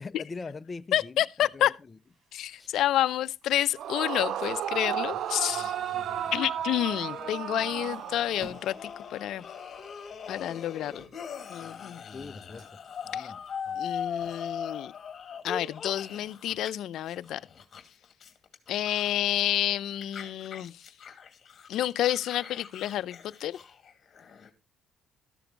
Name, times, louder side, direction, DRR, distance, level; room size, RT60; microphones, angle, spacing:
voice 1, 0.0-2.0 2.5-2.7 5.5-6.3 12.1-12.7 13.0-13.8, left 4 dB, 30° left, 0.6 m, -43 dB
voice 2, 0.9-1.8 2.3-5.7 6.3-9.4 10.3-11.0 11.5-12.0 13.1-13.3 13.8-14.9 15.4-17.4 18.7-20.7 21.7-23.6, left 12 dB, 75° left, 0.5 m, -29 dB
sound 1, 1.5-15.8, right 2 dB, 45° right, 6.2 m, -59 dB
Yell / Screaming, 3.7-8.7, right 10 dB, 70° right, 0.6 m, -33 dB
sound 2, 5.2-16.7 16.9-19.6 20.0-24.5, left 7 dB, 45° left, 2.3 m, -41 dB
13.5 x 7.0 x 4.5 m
cardioid pair, 90°, 0 cm